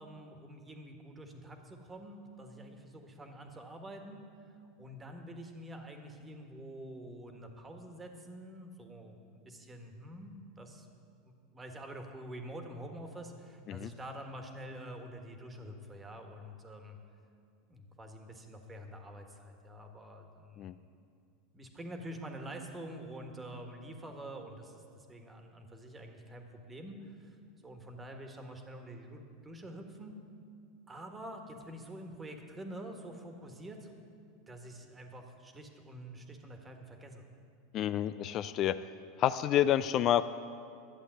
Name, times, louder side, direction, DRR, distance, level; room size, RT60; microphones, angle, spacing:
voice 1, 0.0-4.2 4.8-10.9 11.2-17.0 17.7-20.8 21.5-27.4 27.6-30.2 30.9-33.9 34.5-37.2, right 1 dB, 15° right, 4 dB, 1.5 m, -47 dB
voice 2, 37.7-38.8 39.2-40.2, left 11 dB, 45° left, 13 dB, 0.3 m, -28 dB
12.0 x 8.2 x 7.6 m, 2.4 s
supercardioid pair, 110°, 0 cm